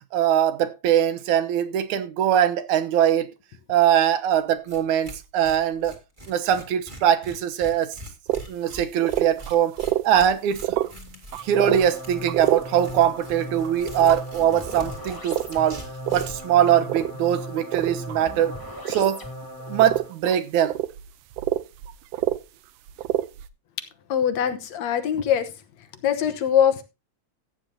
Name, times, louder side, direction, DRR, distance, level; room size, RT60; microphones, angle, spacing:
voice 1, 0.1-3.3 3.7-6.0 6.3-8.0 8.5-9.7 10.0-10.8 11.4-15.8 16.1-18.5 18.9-19.2 19.7-20.8, right 10 dB, 90° right, 2.4 m, -22 dB
Tearing, 4.3-4.4 4.7-4.8 5.0-16.5, right 1 dB, 20° right, 2.0 m, -43 dB
sound 1, 8.3-8.4 8.7-8.8 9.0-10.2 10.5-10.9 11.3-11.8 12.3-12.6 13.6-14.2 14.7-14.9 15.3-15.5 16.1-16.4 16.8-17.1 17.6-18.2 18.8-19.1 19.4-19.5 19.8-20.3 20.6-22.4 22.9-23.5, right 14 dB, 75° right, 1.6 m, -26 dB
sound 2, 11.4-20.2, equal, 10° left, 1.7 m, -37 dB
voice 2, 24.1-25.5 26.0-26.8, left 9 dB, 70° left, 2.3 m, -22 dB
15.0 x 9.3 x 2.8 m
omnidirectional pair, 3.4 m